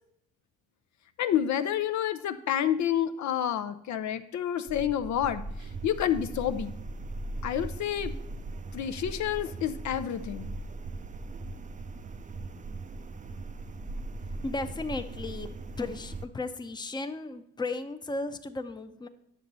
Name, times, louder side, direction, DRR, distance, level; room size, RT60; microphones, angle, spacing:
voice 1, 1.2-5.4 5.8-6.8 7.4-8.1 8.7-10.5, left 10 dB, 70° left, 10 dB, 0.6 m, -29 dB
sound 1, 4.7-16.3, right 2 dB, 25° right, 0.5 m, -39 dB
sound 2, 5.6-7.3, right 9 dB, 90° right, 1.3 m, -55 dB
voice 2, 14.3-15.5 15.8-19.1, left 3 dB, 15° left, 8 dB, 0.6 m, -35 dB
9.6 x 6.6 x 4.0 m, 0.76 s
cardioid pair, 90°, 30 cm